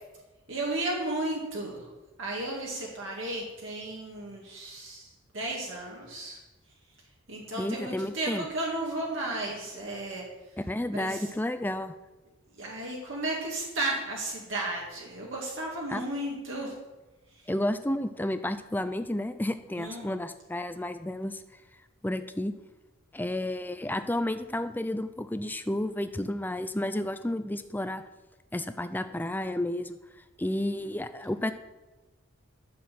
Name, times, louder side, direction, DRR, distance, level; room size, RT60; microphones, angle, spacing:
voice 1, 0.5-1.9 2.2-5.1 5.3-6.4 7.3-10.2 10.9-11.3 12.5-16.7 17.3-17.5 19.8-20.1, right 2 dB, 60° right, -2 dB, 2.1 m, -34 dB
voice 2, 7.6-8.4 10.7-11.9 15.9-16.0 17.5-21.4 22.0-22.5 23.1-28.0 28.5-30.0 30.4-31.5, left 1 dB, 10° left, 10 dB, 0.5 m, -31 dB
12.0 x 6.5 x 7.6 m, 1.1 s
head